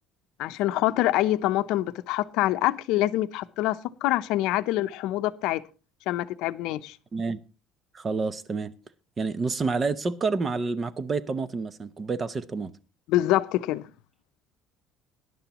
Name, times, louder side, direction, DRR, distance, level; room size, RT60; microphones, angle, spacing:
voice 1, 0.4-5.6 6.1-7.0 13.1-13.9, left 15 dB, 70° left, 0.6 m, -25 dB
voice 2, 7.9-8.7 9.2-12.7, right 4 dB, 20° right, 0.6 m, -28 dB
18.5 x 11.0 x 2.9 m
cardioid pair, 165°, 0 cm